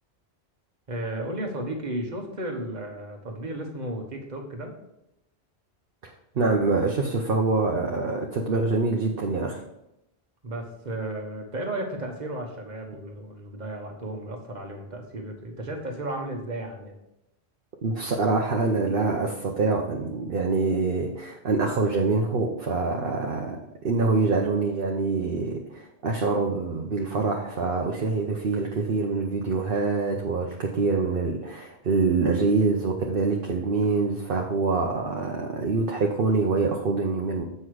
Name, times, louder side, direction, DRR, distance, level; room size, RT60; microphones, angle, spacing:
voice 1, 0.9-4.7 10.4-16.9, right 1 dB, 45° right, 3 dB, 1.4 m, -34 dB
voice 2, 6.0-9.6 17.8-37.4, right 3 dB, 60° right, 1 dB, 1.0 m, -25 dB
7.9 x 5.5 x 4.8 m, 0.87 s
omnidirectional pair, 1.1 m